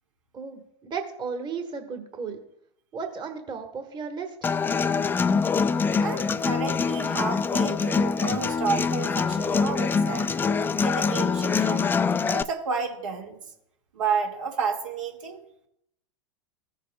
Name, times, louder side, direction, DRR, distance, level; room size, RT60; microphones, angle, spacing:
voice 1, 0.3-2.4 2.9-4.5, right 5 dB, 30° right, 5 dB, 1.3 m, -34 dB
Human voice / Acoustic guitar, 4.4-12.4, left 5 dB, 15° left, 0.3 m, -24 dB
voice 2, 6.0-10.3 10.8-11.9 12.3-13.4 13.9-15.4, right 5 dB, 80° right, 0 dB, 1.7 m, -31 dB
15.0 x 7.3 x 2.2 m, 0.75 s
hypercardioid pair, 100°, 16 cm